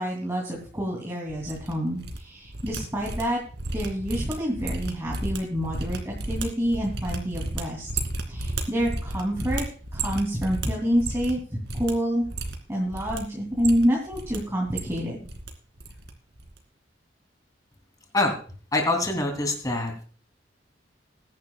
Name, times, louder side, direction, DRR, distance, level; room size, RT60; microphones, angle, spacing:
voice 1, 0.0-3.4 3.7-7.9 8.3-9.7 9.9-12.2 12.7-15.3, equal, 15° right, -3 dB, 2.9 m, -27 dB
sound 1, 1.3-2.2 2.4-11.4 11.6-11.9 12.2-13.2 13.5-14.4 14.6-15.5 15.8-16.1 16.4-16.6, right 2 dB, 65° right, 2.5 m, -33 dB
voice 2, 18.7-19.9, left 2 dB, 20° left, 3 dB, 3.1 m, -24 dB
21.0 x 10.5 x 2.3 m, 0.41 s
head